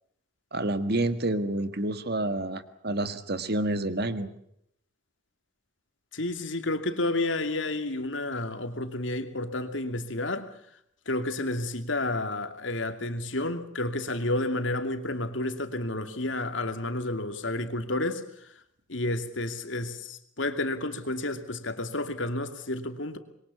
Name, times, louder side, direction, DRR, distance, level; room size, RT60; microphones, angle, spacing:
voice 1, 0.5-4.3, right 1 dB, 55° right, 1.9 m, -29 dB
voice 2, 6.1-10.5 11.1-18.5 18.9-23.2, left 2 dB, 75° left, 2.7 m, -31 dB
26.0 x 22.5 x 7.0 m
head